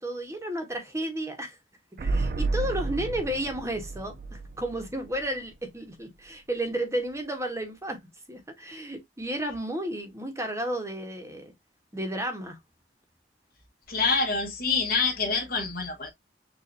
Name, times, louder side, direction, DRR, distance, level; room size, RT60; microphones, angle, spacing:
voice 1, 0.0-1.6 2.0-8.0 8.3-11.5 11.9-12.6, right 1 dB, 15° right, 1.0 m, -32 dB
sound 1, 2.0-5.7 6.0-6.1, right 3 dB, 55° right, 0.4 m, -31 dB
voice 2, 13.9-16.1, left 4 dB, 55° left, 1.4 m, -26 dB
6.7 x 2.5 x 2.5 m
head